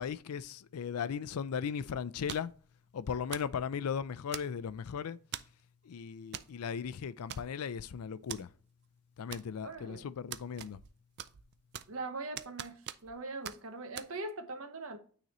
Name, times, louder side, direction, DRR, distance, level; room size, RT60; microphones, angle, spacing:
voice 1, 0.0-2.5 2.9-5.2 5.8-8.5 9.2-10.8, left 7 dB, 85° left, 0.4 m, -37 dB
sound 1, 2.3-2.6 3.3-3.6 4.3-4.8 5.3-5.6 6.3-6.5 6.8-6.9 7.3-7.8 8.3-8.4 9.3-9.8 10.3-10.9 11.2-12.0 12.4-13.2 13.4-13.6 14.0-14.1, right 10 dB, 50° right, 0.4 m, -43 dB
voice 2, 9.6-10.1 11.9-15.0, right 3 dB, 65° right, 1.0 m, -41 dB
9.1 x 4.0 x 3.0 m
head